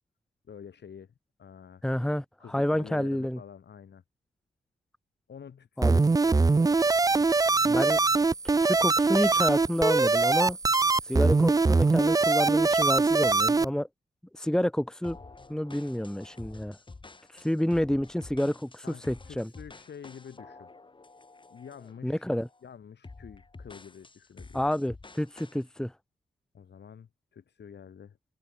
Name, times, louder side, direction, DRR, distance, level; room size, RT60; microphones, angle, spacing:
voice 1, 0.5-1.8 2.4-4.0 5.3-7.3 18.8-20.7 21.5-22.3 22.6-24.6 26.5-28.2, left 7 dB, 70° left, 7.0 m, -48 dB
voice 2, 1.8-3.4 5.8-6.0 7.7-8.0 8.6-10.6 11.0-13.9 14.3-15.2 15.5-16.8 17.3-19.5 22.0-22.5 24.5-25.9, left 1 dB, 5° left, 1.4 m, -29 dB
sound 1, 5.8-13.7, right 3 dB, 20° right, 0.5 m, -23 dB
sound 2, 15.0-22.0 22.4-22.6 23.0-25.6, left 3 dB, 25° left, 2.4 m, -49 dB
open air
wide cardioid pair, 100°, 18 cm